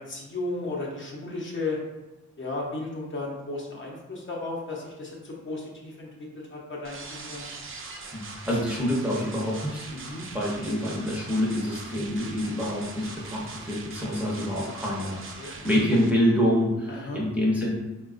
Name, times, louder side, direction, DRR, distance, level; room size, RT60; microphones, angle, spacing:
voice 1, 0.0-1.8 2.4-7.5 9.9-10.2 10.5-11.1 14.5-15.9 16.9-17.2, left 2 dB, 40° left, -3 dB, 0.7 m, -35 dB
sound 1, 6.8-16.1, right 3 dB, 45° right, 0.5 m, -42 dB
voice 2, 8.1-9.9 10.3-17.7, equal, 5° right, -5 dB, 0.6 m, -26 dB
3.9 x 2.3 x 2.4 m, 1.0 s
wide cardioid pair, 115°, 29 cm